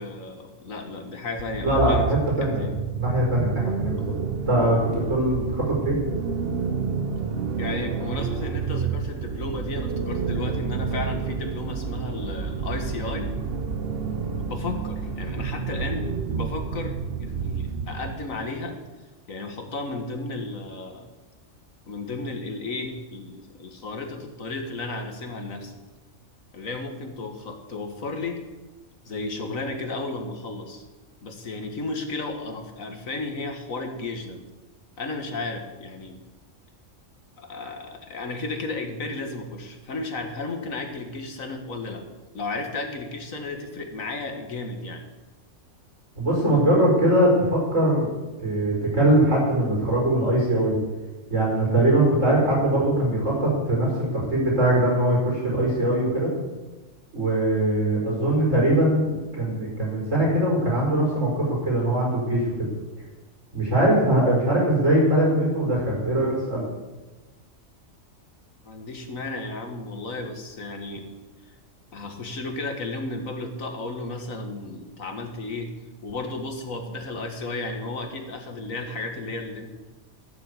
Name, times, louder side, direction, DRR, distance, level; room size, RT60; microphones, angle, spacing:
voice 1, 0.0-2.8 7.6-13.3 14.4-18.8 19.3-21.1 21.9-25.7 26.5-28.4 29.1-30.8 31.2-34.4 35.0-36.2 37.4-42.0 42.3-45.1 52.1-52.4 68.6-71.1 71.9-75.7 76.0-79.7, left 2 dB, 80° left, 4 dB, 2.1 m, -33 dB
sound 1, 1.4-18.3, right 5 dB, 50° right, 1.1 m, -29 dB
voice 2, 1.6-4.1 4.5-6.0 46.2-48.1 48.4-50.7 51.3-56.3 57.1-62.7 63.5-66.6, right 1 dB, 70° right, -3 dB, 5.6 m, -22 dB
14.0 x 7.5 x 8.3 m, 1.2 s
omnidirectional pair, 1.4 m